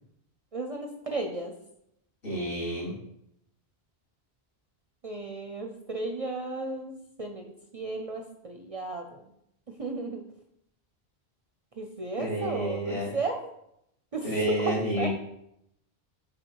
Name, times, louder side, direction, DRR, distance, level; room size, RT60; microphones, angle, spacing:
voice 1, 0.5-1.5 5.0-6.9 7.2-9.2 9.8-10.2 11.8-13.4 14.1-15.1, right 2 dB, 45° right, 3 dB, 0.5 m, -34 dB
voice 2, 2.2-2.9 12.2-13.2 14.2-15.1, right 1 dB, 60° left, -7 dB, 2.7 m, -29 dB
6.4 x 3.7 x 4.6 m, 0.77 s
omnidirectional pair, 1.1 m